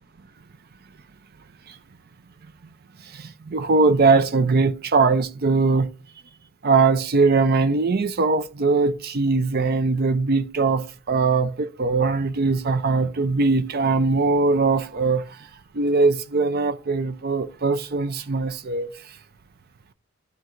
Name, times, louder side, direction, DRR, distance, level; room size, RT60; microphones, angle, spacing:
voice 1, 3.0-5.9 6.6-15.5 15.7-19.2, right 4 dB, 45° right, 0.5 m, -21 dB
12.0 x 4.6 x 2.5 m
head